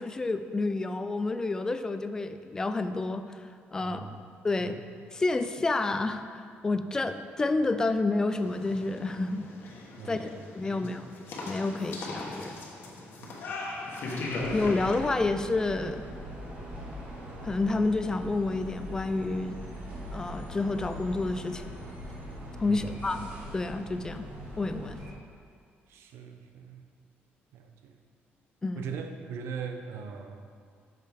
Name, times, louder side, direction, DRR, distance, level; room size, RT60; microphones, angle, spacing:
voice 1, 0.0-4.8 5.1-9.5 10.0-10.3 10.5-11.1 11.5-12.6 14.5-16.0 17.4-19.6 20.1-21.7 22.6-24.3 24.6-25.0 28.6-28.9, left 3 dB, 15° left, 9 dB, 0.3 m, -29 dB
voice 2, 3.8-4.2 4.6-4.7 10.0-10.9 13.2-13.3 22.7-22.9 25.9-26.8 27.5-28.0 28.8-30.5, right 6 dB, 75° right, 5 dB, 0.8 m, -41 dB
sound 1, 8.4-15.0, left 2 dB, 60° left, 1.3 m, -38 dB
sound 2, 14.3-25.1, equal, 40° right, 2.1 m, -41 dB
10.5 x 6.5 x 3.6 m, 2.2 s
cardioid pair, 165°, 4 cm